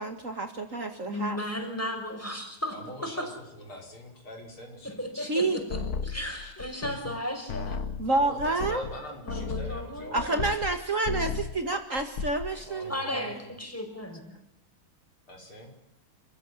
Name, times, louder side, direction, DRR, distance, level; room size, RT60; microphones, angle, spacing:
voice 1, 0.0-1.4 5.2-5.6 8.0-8.8 10.1-13.2, right 2 dB, 40° right, 6 dB, 2.1 m, -29 dB
voice 2, 1.1-2.8 3.0-3.2 4.8-7.8 9.2-10.5 12.9-14.2, left 1 dB, 5° left, 4 dB, 5.7 m, -35 dB
voice 3, 2.7-5.0 8.2-10.4 12.5-13.5 15.3-15.7, equal, 80° left, 2 dB, 6.2 m, -44 dB
sound 1, 5.7-7.2 7.5-10.8 11.0-11.6 12.0-12.5, left 5 dB, 50° left, 1.5 m, -34 dB
29.5 x 15.0 x 9.9 m, 0.84 s
omnidirectional pair, 2.3 m